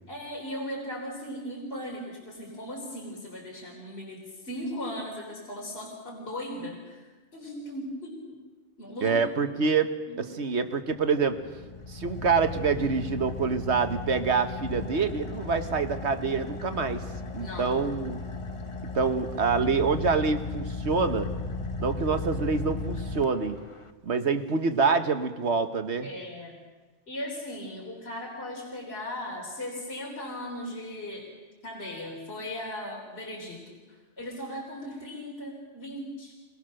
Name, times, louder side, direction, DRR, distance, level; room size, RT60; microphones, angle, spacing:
voice 1, 0.1-8.4 8.8-9.2 10.1-10.4 17.4-17.8 26.0-26.6 27.1-31.3 31.6-36.3, left 1 dB, 50° left, -3 dB, 4.1 m, -38 dB
voice 2, 9.0-9.9 10.2-11.4 11.9-17.0 17.3-18.2 18.9-21.3 21.8-23.6 24.0-26.1, right 5 dB, 60° right, 8 dB, 1.5 m, -26 dB
Car / Idling, 11.0-23.9, left 3 dB, 25° left, 1.0 m, -36 dB
26.0 x 20.0 x 6.5 m, 1.3 s
omnidirectional pair, 1.3 m